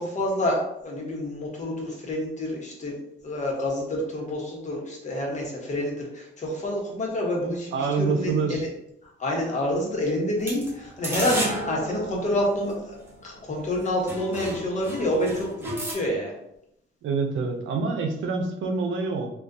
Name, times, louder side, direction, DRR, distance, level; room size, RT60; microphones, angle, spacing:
voice 1, 0.0-3.0 3.2-7.7 8.0-8.6 9.2-16.3, left 1 dB, 35° left, -1 dB, 1.1 m, -28 dB
voice 2, 7.7-8.6 17.0-19.3, right 4 dB, 75° right, 4 dB, 0.6 m, -26 dB
sound 1, 10.4-13.1 13.7-13.8 14.1-15.9, right 1 dB, 10° right, 1.4 m, -33 dB
3.5 x 2.4 x 2.6 m, 0.79 s
cardioid pair, 90°, 20 cm